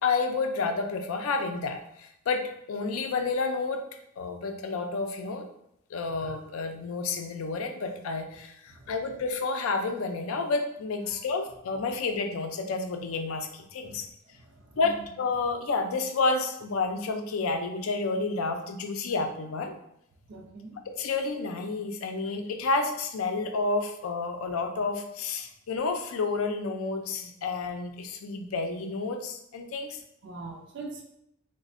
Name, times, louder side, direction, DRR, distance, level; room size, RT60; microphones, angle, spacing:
voice 1, 0.0-3.8 4.2-5.5 5.9-14.1 14.8-19.7 20.9-30.0, left 3 dB, 85° left, 5 dB, 0.4 m, -30 dB
voice 2, 14.3-15.1 20.3-20.8 30.2-31.0, right 3 dB, 55° right, 2 dB, 0.4 m, -43 dB
4.0 x 2.1 x 2.5 m, 0.77 s
head